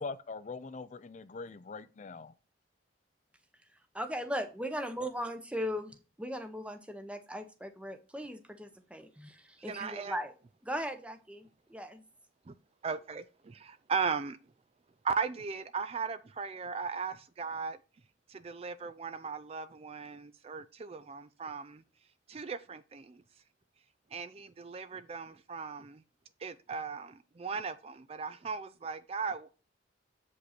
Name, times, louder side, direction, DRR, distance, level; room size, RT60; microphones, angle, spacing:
voice 1, 0.0-2.3, left 4 dB, 40° left, 0.4 m, -42 dB
voice 2, 3.9-10.3 10.6-12.0, equal, 5° right, 0.8 m, -38 dB
voice 3, 9.7-10.2 12.5-12.6 12.8-14.4 15.0-17.8 18.3-21.8 22.3-23.2 24.1-26.0 26.4-29.6, right 5 dB, 30° right, 0.3 m, -37 dB
8.0 x 5.2 x 4.2 m
head